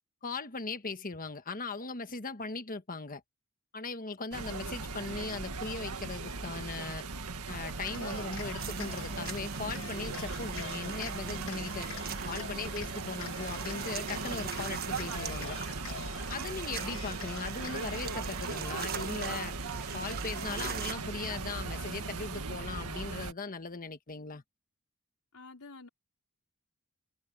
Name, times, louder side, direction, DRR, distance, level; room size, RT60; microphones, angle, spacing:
voice 1, 0.2-3.2 3.7-7.0 7.5-11.9 12.3-15.6 16.3-19.5 19.9-24.4, left 4 dB, 40° left, 1.4 m, -39 dB
sound 1, 4.3-23.3, right 3 dB, 90° right, 1.7 m, -38 dB
Cheering, 7.8-9.4 9.7-11.1 11.5-12.9 13.2-14.6 14.9-16.4 16.7-18.1, left 7 dB, 60° left, 1.6 m, -46 dB
sound 2, 8.6-20.9, right 6 dB, 45° right, 1.4 m, -42 dB
voice 2, 25.3-25.9, left 3 dB, 90° left, 3.7 m, -51 dB
open air
head